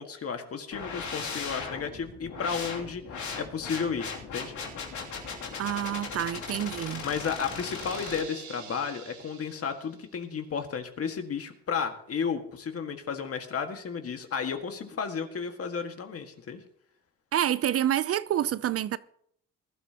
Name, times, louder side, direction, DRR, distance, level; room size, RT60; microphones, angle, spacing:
voice 1, 0.0-4.5 7.0-16.6, left 6 dB, 50° left, 1.8 m, -33 dB
sound 1, 0.7-8.2, left 5 dB, 70° left, 2.9 m, -38 dB
voice 2, 5.6-7.0 17.3-19.0, right 11 dB, 50° right, 0.5 m, -28 dB
sound 2, 7.6-10.1, right 7 dB, 75° right, 1.8 m, -46 dB
20.5 x 12.5 x 2.9 m
cardioid pair, 90°, 30 cm